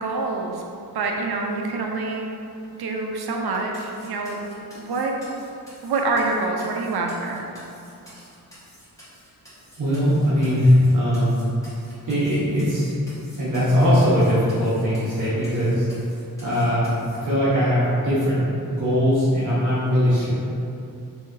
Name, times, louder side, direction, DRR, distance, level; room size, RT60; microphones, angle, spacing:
voice 1, 0.0-0.6 0.9-2.3 2.8-4.4 4.7-5.1 5.8-7.4, right 3 dB, 85° right, 0 dB, 0.6 m, -26 dB
sound 1, 3.5-17.2, equal, 10° left, 1.2 m, -49 dB
voice 2, 9.8-11.4 12.1-12.9 13.4-15.9 16.4-20.3, equal, 55° right, -10 dB, 1.0 m, -20 dB
6.8 x 2.9 x 2.6 m, 2.7 s
wide cardioid pair, 180°, 37 cm